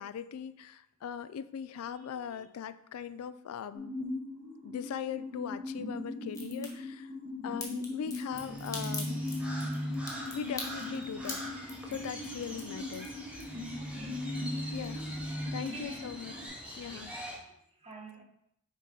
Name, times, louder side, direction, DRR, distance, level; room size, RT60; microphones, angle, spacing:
voice 1, 0.0-4.0 4.6-7.1 7.4-9.3 10.3-13.6 14.4-14.5 14.7-15.3 15.5-16.3 16.8-17.1, left 8 dB, 85° left, 0.3 m, -40 dB
voice 2, 2.1-2.5 12.4-12.5 13.5-14.6 15.5-16.0 16.3-16.6 16.9-17.1 17.5-18.2, right 3 dB, 30° right, 1.1 m, -50 dB
sound 1, 3.7-16.5, left 2 dB, 60° right, 1.7 m, -40 dB
Crack, 6.3-6.7 7.6-13.8 14.2-14.8 15.1-15.2, left 3 dB, 15° left, 1.2 m, -42 dB
Crow, 8.3-17.4, equal, 5° right, 0.9 m, -40 dB
6.4 x 4.2 x 3.8 m
head